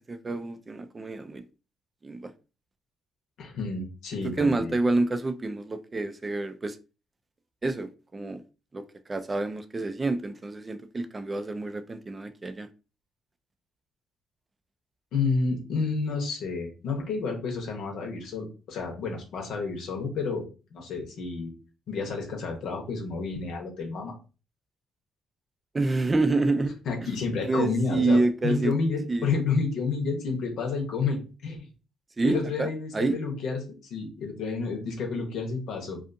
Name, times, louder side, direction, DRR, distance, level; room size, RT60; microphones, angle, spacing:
voice 1, 0.1-1.4 2.0-2.3 4.4-6.8 7.6-8.4 8.7-8.8 9.1-12.7 25.7-26.7 27.5-28.8 29.1-29.3 32.2-33.2, right 2 dB, 25° right, 0.3 m, -27 dB
voice 2, 3.4-4.7 15.1-20.4 20.7-21.5 21.9-24.1 26.9-31.7 32.2-36.1, left 4 dB, 75° left, 0.8 m, -30 dB
2.5 x 2.4 x 2.5 m
cardioid pair, 90°, 0 cm